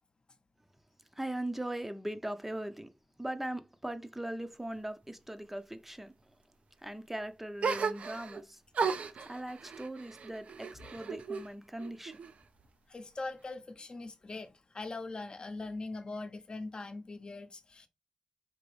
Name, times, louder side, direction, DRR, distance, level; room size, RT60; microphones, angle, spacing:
voice 1, 1.2-2.9 3.2-6.1 6.8-8.6 9.3-12.2, right 1 dB, 10° right, 0.6 m, -39 dB
sound 1, 7.6-8.4 8.7-11.5 11.8-12.6, right 5 dB, 75° right, 0.5 m, -35 dB
voice 2, 12.9-17.9, left 3 dB, 45° left, 0.8 m, -41 dB
5.0 x 2.9 x 3.2 m
cardioid pair, 80°, 2 cm